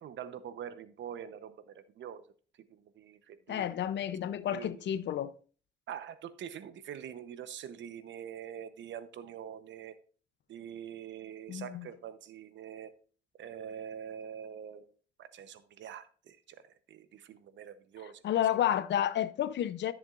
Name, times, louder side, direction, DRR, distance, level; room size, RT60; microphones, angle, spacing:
voice 1, 0.0-2.3 2.7-3.7 4.5-4.8 5.9-10.0 10.5-12.9 13.4-14.9 15.2-18.2, right 9 dB, 70° right, 0.9 m, -44 dB
voice 2, 3.5-5.3 11.5-11.9 18.2-19.9, left 10 dB, 65° left, 0.6 m, -30 dB
13.5 x 7.2 x 2.5 m
cardioid pair, 90°, 20 cm